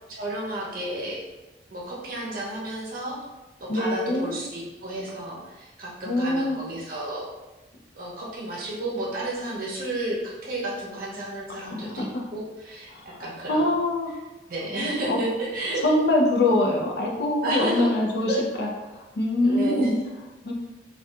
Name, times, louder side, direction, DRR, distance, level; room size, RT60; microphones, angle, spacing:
voice 1, 0.1-1.2 1.7-3.2 3.6-7.3 8.0-12.1 12.3-13.7 14.5-15.8 17.4-17.9 18.3-18.4 19.4-20.0, right 1 dB, 50° right, -4 dB, 0.6 m, -31 dB
voice 2, 3.7-4.3 6.0-6.6 11.6-12.3 12.9-13.2 13.5-14.1 15.1-15.2 15.8-18.7 19.1-20.0 20.4-20.5, left 1 dB, 60° left, -1 dB, 0.5 m, -24 dB
2.7 x 2.3 x 2.3 m, 1.1 s
head